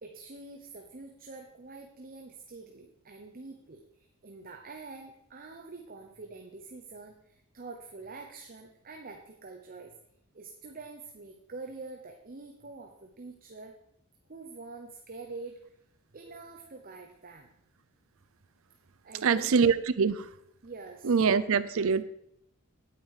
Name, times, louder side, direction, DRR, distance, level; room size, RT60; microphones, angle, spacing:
voice 1, 0.0-9.9 10.3-13.8 14.3-15.6 16.1-17.5 19.0-19.5 20.6-21.1, right 3 dB, 40° right, 3 dB, 0.9 m, -45 dB
voice 2, 19.2-20.3 21.0-22.0, right 5 dB, 65° right, 13 dB, 0.5 m, -24 dB
9.0 x 9.0 x 4.9 m, 0.74 s
head